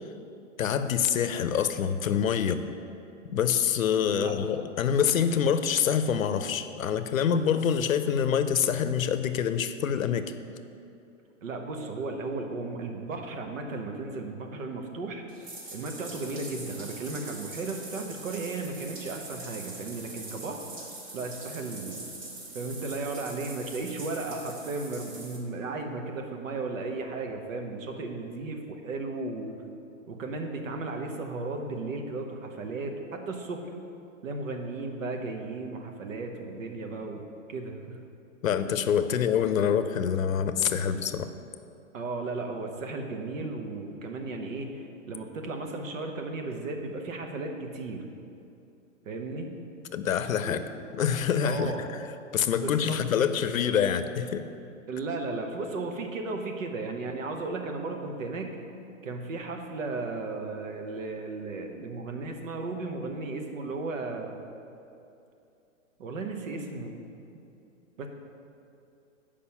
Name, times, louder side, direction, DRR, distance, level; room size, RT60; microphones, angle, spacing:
voice 1, 0.6-2.6 3.3-10.3 38.4-41.3 49.9-50.6 50.9-51.9 52.3-54.4, left 8 dB, 85° left, 10 dB, 0.6 m, -26 dB
voice 2, 11.4-15.2 15.7-20.6 21.1-22.0 22.5-29.5 30.1-33.6 34.2-38.0 41.9-48.0 49.0-49.5 50.4-50.7 51.4-51.8 52.6-53.0 54.9-58.6 59.0-64.3 66.0-66.9 68.0-68.1, right 3 dB, 75° right, 4 dB, 1.1 m, -35 dB
Bathtub (filling or washing), 15.3-25.4, right 2 dB, 40° right, 1.7 m, -43 dB
7.0 x 5.1 x 5.7 m, 2.7 s
hypercardioid pair, 125°, 40 cm